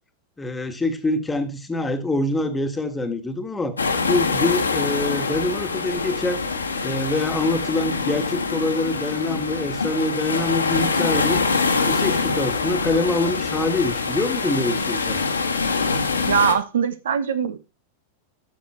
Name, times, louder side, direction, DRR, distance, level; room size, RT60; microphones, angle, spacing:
voice 1, 0.4-3.8 4.0-6.4 6.8-11.4 11.9-15.2, left 2 dB, 10° left, 1.6 m, -25 dB
sound 1, 3.8-16.5, left 4 dB, 75° left, 1.5 m, -24 dB
voice 2, 16.3-17.6, right 7 dB, 65° right, 1.0 m, -21 dB
13.0 x 6.8 x 4.4 m
figure-of-eight pair, 90°, 0 cm